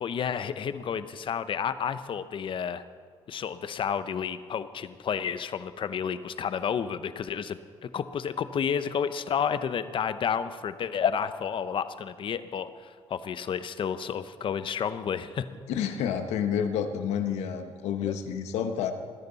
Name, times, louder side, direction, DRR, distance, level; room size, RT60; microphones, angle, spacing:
voice 1, 0.0-2.8 3.3-15.5 18.0-18.1, left 7 dB, 50° left, 13 dB, 0.8 m, -31 dB
voice 2, 15.7-18.9, left 8 dB, 85° left, 8 dB, 1.2 m, -29 dB
27.5 x 10.5 x 4.1 m, 2.1 s
cardioid pair, 90°, 11 cm